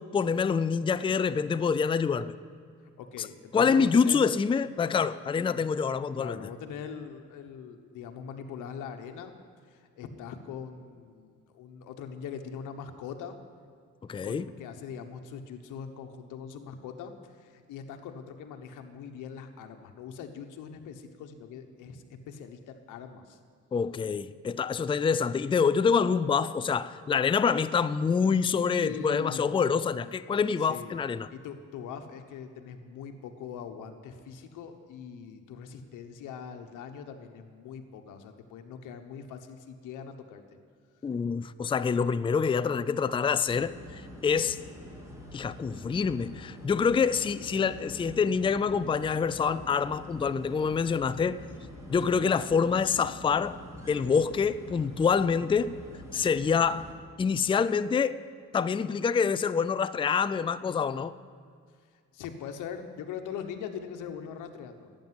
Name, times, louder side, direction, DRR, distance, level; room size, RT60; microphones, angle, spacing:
voice 1, 0.0-2.3 3.5-6.5 14.1-14.5 23.7-31.3 41.0-44.6 45.3-51.4 51.9-53.6 53.9-55.7 56.1-56.9 57.2-58.2 58.5-61.2, left 6 dB, 15° left, 0.4 m, -26 dB
voice 2, 3.0-4.2 6.1-9.3 9.7-13.4 14.2-17.1 17.4-23.4 28.8-29.5 30.6-30.9 31.3-40.4 52.1-52.3 62.1-64.9, left 7 dB, 90° left, 1.2 m, -42 dB
sound 1, 43.4-56.9, equal, 10° right, 2.8 m, -46 dB
12.0 x 8.8 x 9.5 m
cardioid pair, 90°, 30 cm